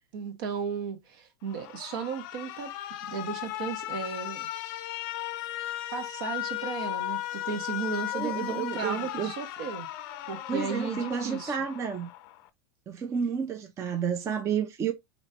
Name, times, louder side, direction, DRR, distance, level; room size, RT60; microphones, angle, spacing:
voice 1, 0.1-2.7 3.1-4.5 5.9-9.9 10.3-11.5, right 6 dB, 65° right, 1.0 m, -35 dB
Alarm, 1.5-12.5, left 15 dB, 55° left, 0.4 m, -36 dB
voice 2, 8.1-9.3 10.5-12.1 12.9-14.9, right 7 dB, 25° right, 0.5 m, -31 dB
3.2 x 3.0 x 2.7 m
supercardioid pair, 125°, 13 cm